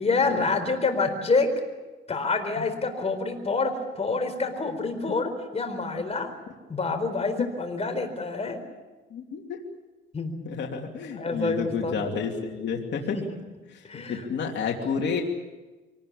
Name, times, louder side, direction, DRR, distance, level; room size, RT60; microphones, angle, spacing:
voice 1, 0.0-1.5 2.1-6.3 6.7-8.6 10.1-10.4 11.1-12.0 13.1-13.2 13.9-14.3, left 3 dB, 30° left, 6 dB, 4.3 m, -27 dB
voice 2, 9.1-9.6 10.4-13.2 13.7-13.8 14.1-15.2, left 6 dB, 60° left, 0 dB, 2.9 m, -30 dB
24.5 x 18.5 x 8.6 m, 1.2 s
cardioid pair, 90°, 20 cm